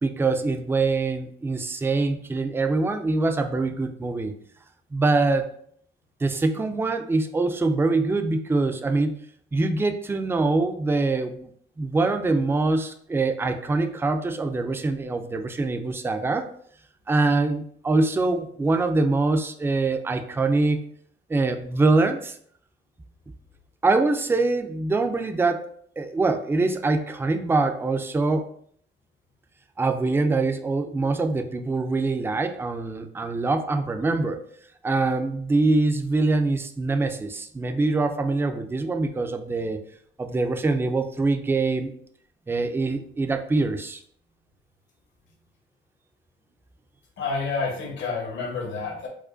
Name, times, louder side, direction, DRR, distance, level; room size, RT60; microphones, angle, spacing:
voice 1, 0.0-4.3 4.9-5.5 6.2-9.1 9.5-11.5 11.8-16.5 17.1-20.8 21.3-22.4 23.8-25.7 26.0-28.5 29.8-34.4 34.8-39.8 40.2-41.9 42.5-44.0, right 3 dB, 10° right, 6 dB, 0.3 m, -24 dB
voice 2, 47.2-49.1, left 4 dB, 70° left, 2 dB, 1.0 m, -29 dB
4.7 x 2.2 x 2.5 m, 0.62 s
cardioid pair, 90°, 20 cm